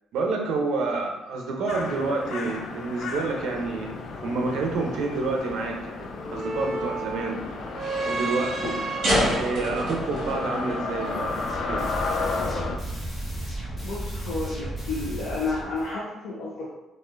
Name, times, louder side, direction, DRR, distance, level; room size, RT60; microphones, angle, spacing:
voice 1, 0.1-7.4 8.0-8.8 9.4-11.9, right 3 dB, 70° right, 1 dB, 0.6 m, -29 dB
sound 1, 1.7-12.8, left 4 dB, 50° left, 0.3 m, -33 dB
sound 2, 3.4-11.7, right 1 dB, 55° right, 1.3 m, -30 dB
sound 3, 11.0-15.9, right 1 dB, 15° left, 0.9 m, -34 dB
voice 2, 13.8-16.7, left 3 dB, 80° left, -7 dB, 0.7 m, -31 dB
4.2 x 2.5 x 2.5 m, 0.96 s
cardioid pair, 160°, 0 cm